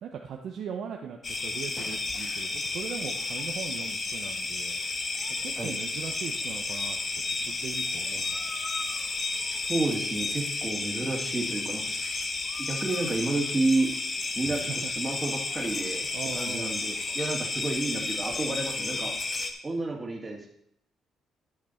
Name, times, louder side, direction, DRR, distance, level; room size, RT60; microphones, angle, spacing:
voice 1, 0.0-4.8 5.4-7.0 7.4-8.2 14.4-14.9 16.1-16.8, right 7 dB, 70° right, 2 dB, 0.8 m, -39 dB
sound 1, 1.2-19.5, left 3 dB, 35° left, 1.1 m, -32 dB
voice 2, 9.7-12.3 12.6-13.9 14.3-16.1 16.3-19.1 19.6-20.5, right 2 dB, 25° right, 0 dB, 2.3 m, -30 dB
11.0 x 6.0 x 4.4 m, 0.73 s
cardioid pair, 90°, 0 cm